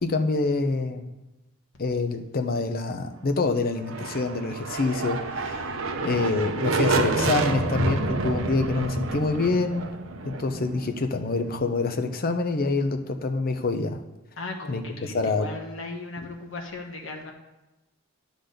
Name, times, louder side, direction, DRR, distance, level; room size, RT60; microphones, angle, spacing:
voice 1, 0.0-1.0 1.8-5.7 6.0-9.9 10.2-14.0 14.7-14.8 15.1-15.5, left 3 dB, 45° left, 7 dB, 0.7 m, -26 dB
sound 1, 3.7-11.5, right 3 dB, 75° right, 0.8 m, -28 dB
voice 2, 5.9-6.3 14.4-17.3, left 2 dB, 65° left, 1 dB, 1.2 m, -37 dB
10.0 x 3.9 x 6.6 m, 1.0 s
head